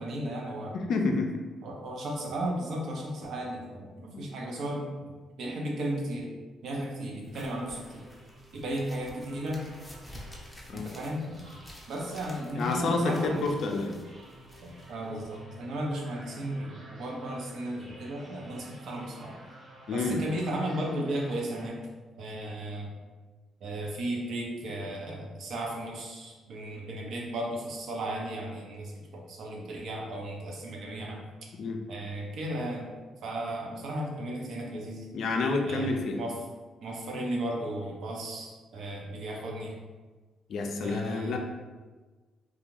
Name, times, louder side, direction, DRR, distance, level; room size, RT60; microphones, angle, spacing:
voice 1, 0.0-0.8 1.6-4.9 5.4-6.3 6.6-8.1 8.5-9.6 10.7-11.2 11.9-13.5 14.6-19.4 19.9-21.9 22.2-22.9 23.6-31.2 31.9-32.9 33.2-35.2 35.6-36.3 36.8-39.8 40.8-41.4, right 1 dB, 70° right, -1 dB, 0.6 m, -35 dB
voice 2, 0.7-1.4 4.1-4.2 10.7-10.9 11.3-11.4 12.6-14.0 19.9-20.2 31.6-31.8 35.1-36.2 40.5-41.4, left 3 dB, 65° left, 3 dB, 0.4 m, -29 dB
sound 1, 7.2-15.4, left 1 dB, 10° left, 0.6 m, -51 dB
sound 2, 7.8-21.7, right 2 dB, 50° right, 1.0 m, -52 dB
2.5 x 2.3 x 3.1 m, 1.3 s
cardioid pair, 90°, 0 cm